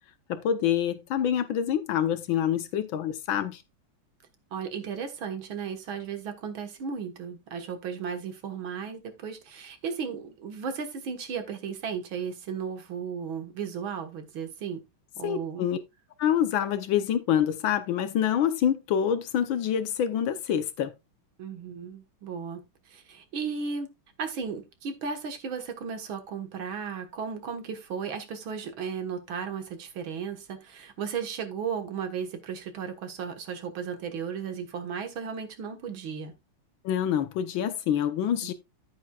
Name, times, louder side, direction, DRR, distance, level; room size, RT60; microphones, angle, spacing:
voice 1, 0.3-3.6 15.2-15.8 16.2-20.9 36.8-38.5, left 9 dB, 70° left, 1.5 m, -26 dB
voice 2, 4.5-14.8 15.2-15.7 21.4-22.6 22.9-23.9 24.2-36.3 38.4-38.5, right 6 dB, 70° right, 2.2 m, -35 dB
11.0 x 8.9 x 2.3 m
omnidirectional pair, 2.4 m